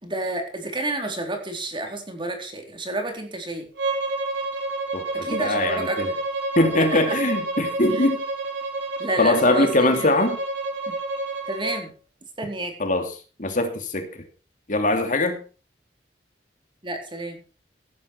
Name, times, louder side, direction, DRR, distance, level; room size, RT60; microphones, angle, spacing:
voice 1, 0.0-3.7 5.2-6.0 6.8-7.2 7.9-8.0 9.0-9.7 10.0-10.1 10.9-11.0 11.5-11.9 12.4-12.7 16.8-17.4, right 2 dB, 30° right, 3 dB, 4.0 m, -30 dB
Bowed string instrument, 3.8-11.8, right 2 dB, 90° right, 4.5 m, -29 dB
voice 2, 4.9-6.1 6.6-8.2 9.2-10.4 12.8-13.1 13.4-14.1 14.7-15.4, left 2 dB, 45° left, 6 dB, 2.6 m, -22 dB
17.0 x 11.0 x 4.7 m, 0.35 s
head